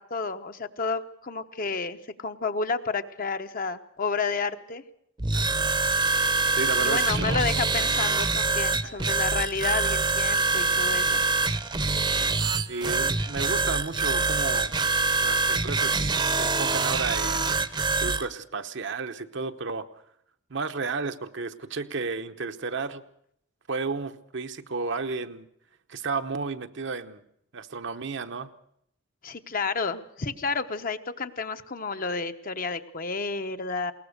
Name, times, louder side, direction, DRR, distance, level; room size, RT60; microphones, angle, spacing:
voice 1, 0.0-4.8 6.8-11.3 29.2-33.9, left 4 dB, 45° left, 8 dB, 1.0 m, -31 dB
sound 1, 5.2-18.2, right 3 dB, 25° right, 0.8 m, -25 dB
voice 2, 6.5-7.4 8.8-9.0 12.7-14.7 15.2-17.5 18.0-19.9 20.5-23.0 23.7-25.5 25.9-27.2 27.5-28.5, right 4 dB, 65° right, 8 dB, 1.0 m, -32 dB
21.5 x 18.5 x 6.6 m, 0.72 s
head